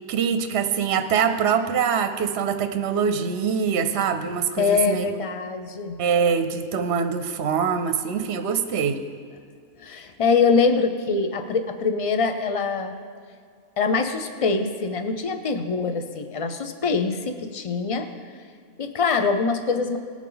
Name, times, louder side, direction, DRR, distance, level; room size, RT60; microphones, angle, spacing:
voice 1, 0.0-5.1 6.0-9.0, right 7 dB, 60° right, 8 dB, 0.8 m, -24 dB
voice 2, 4.6-6.0 9.8-13.0 13.8-18.1 18.8-20.0, left 4 dB, 55° left, 7 dB, 0.4 m, -24 dB
19.0 x 7.3 x 3.9 m, 2.1 s
omnidirectional pair, 1.5 m